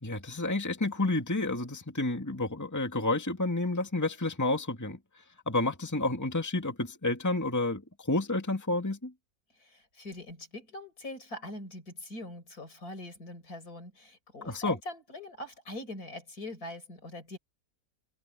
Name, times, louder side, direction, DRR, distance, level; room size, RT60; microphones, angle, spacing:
voice 1, 0.0-9.1 14.4-14.8, left 2 dB, 10° left, 2.2 m, -30 dB
voice 2, 9.6-17.4, left 1 dB, 60° left, 5.3 m, -43 dB
omnidirectional pair, 1.8 m